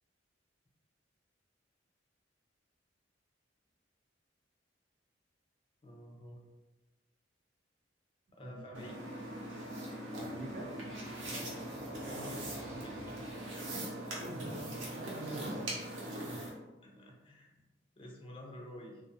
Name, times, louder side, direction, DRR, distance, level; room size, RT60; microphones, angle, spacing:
voice 1, 5.8-6.4 8.3-9.0 11.3-13.2 16.2-17.6 18.0-19.0, left 1 dB, 30° left, 0 dB, 0.4 m, -50 dB
voice 2, 8.4-8.9 10.2-10.7 14.2-15.9 16.3-16.4, right 1 dB, 50° right, 2 dB, 0.4 m, -45 dB
sound 1, 8.7-16.5, right 1 dB, 80° right, 0.7 m, -41 dB
sound 2, 9.4-15.4, right 1 dB, 10° right, 0.6 m, -56 dB
2.4 x 2.1 x 2.6 m, 1.1 s
head